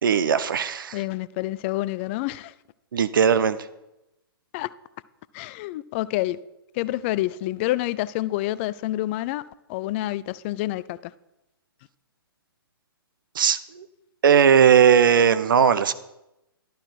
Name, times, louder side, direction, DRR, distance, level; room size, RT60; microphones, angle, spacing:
voice 1, 0.0-1.0 2.9-3.6 13.4-13.8 14.2-15.9, right 7 dB, 60° right, 0.8 m, -18 dB
voice 2, 0.9-2.5 4.5-4.7 5.3-6.4 6.7-9.4 9.7-11.0, left 16 dB, 30° left, 0.4 m, -28 dB
12.0 x 11.5 x 4.7 m
figure-of-eight pair, 120°, 13 cm